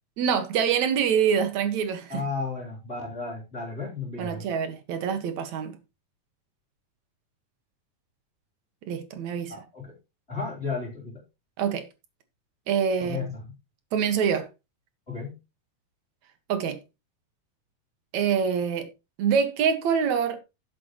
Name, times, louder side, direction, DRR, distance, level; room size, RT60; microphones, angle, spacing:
voice 1, 0.2-2.2 4.2-5.8 8.9-9.5 11.6-11.8 12.7-13.2 13.9-14.5 16.5-16.8 18.1-18.9 19.2-20.4, right 7 dB, 60° right, 2.8 m, -25 dB
voice 2, 2.1-4.5 9.5-9.9 10.3-11.2 13.0-13.4 15.1-15.3, left 4 dB, 20° left, 3.9 m, -33 dB
12.0 x 9.8 x 3.1 m
omnidirectional pair, 3.7 m